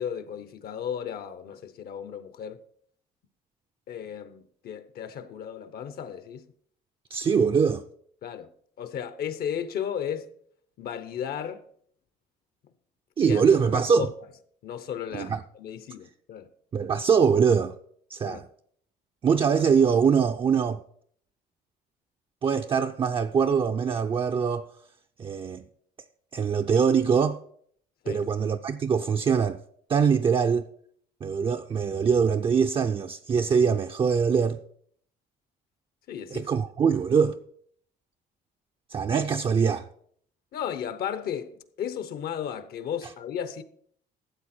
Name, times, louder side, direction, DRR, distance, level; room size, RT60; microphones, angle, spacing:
voice 1, 0.0-2.6 3.9-6.5 8.2-8.5 8.8-10.3 10.8-11.7 13.3-13.4 13.7-14.1 14.6-16.5 18.2-18.4 28.0-28.3 36.1-36.5 40.5-43.6, left 8 dB, 65° left, 0.9 m, -34 dB
voice 2, 7.1-7.8 13.2-14.1 15.1-15.4 16.7-17.7 18.1-18.4 19.2-20.8 22.4-24.7 25.2-25.6 26.3-27.4 28.1-29.6 29.9-30.6 31.2-34.6 36.3-37.4 38.9-39.9, right 6 dB, 30° right, 0.5 m, -23 dB
13.0 x 7.9 x 4.4 m
cardioid pair, 110°, 17 cm